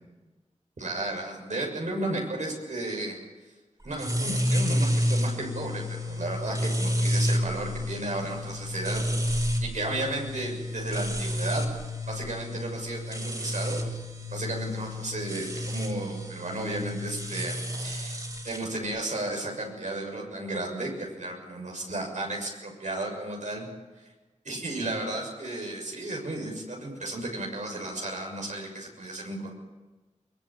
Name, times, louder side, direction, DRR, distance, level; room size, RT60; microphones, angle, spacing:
voice 1, 0.8-3.1 3.8-11.7 12.1-13.8 14.3-18.2 18.4-23.7 24.0-24.1 24.4-29.5, right 2 dB, 80° right, 0 dB, 6.7 m, -34 dB
sound 1, 3.9-18.6, equal, 30° right, 4.7 m, -30 dB
22.5 x 21.0 x 8.8 m, 1.2 s
wide cardioid pair, 65°, 12 cm